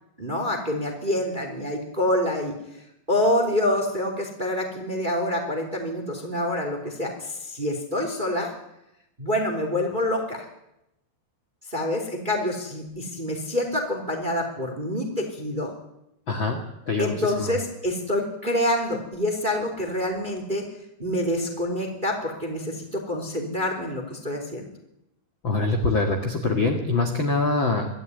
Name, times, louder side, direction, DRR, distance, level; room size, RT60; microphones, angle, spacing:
voice 1, 0.2-2.5 3.1-8.5 9.2-10.5 11.7-15.7 17.0-20.6 21.0-24.7, left 1 dB, 15° right, 3 dB, 2.8 m, -27 dB
voice 2, 16.3-16.6 16.9-17.5 25.4-27.9, left 3 dB, 40° left, 2 dB, 2.0 m, -24 dB
23.5 x 13.0 x 9.5 m, 0.86 s
omnidirectional pair, 4.3 m